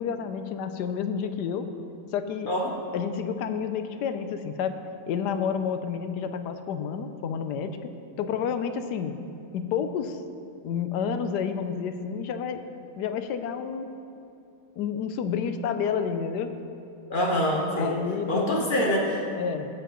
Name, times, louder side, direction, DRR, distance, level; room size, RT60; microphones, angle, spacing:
voice 1, 0.0-1.7 2.1-2.5 2.9-4.8 5.1-7.9 8.2-9.2 9.5-10.2 10.6-12.6 13.0-13.9 14.8-16.5 17.7-18.8 19.4-19.7, left 7 dB, 80° left, 9 dB, 1.2 m, -30 dB
voice 2, 17.1-17.9 18.3-19.2, equal, 35° left, -2 dB, 1.3 m, -25 dB
15.5 x 6.9 x 3.0 m, 2.7 s
omnidirectional pair, 1.8 m